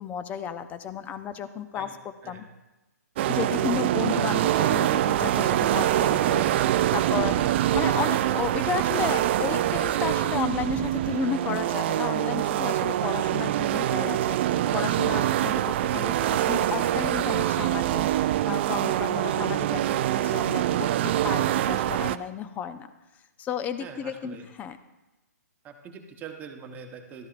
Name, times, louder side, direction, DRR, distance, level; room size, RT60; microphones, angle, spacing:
voice 1, 0.0-2.4 3.3-22.9 23.4-24.8, left 8 dB, 15° left, 11 dB, 0.5 m, -33 dB
sound 1, 3.2-22.2, right 12 dB, 40° right, 0.4 m, -24 dB
voice 2, 23.8-24.5 25.6-27.3, right 6 dB, 20° right, 4 dB, 1.1 m, -44 dB
13.5 x 13.0 x 2.5 m, 1.0 s
hypercardioid pair, 140°, 9 cm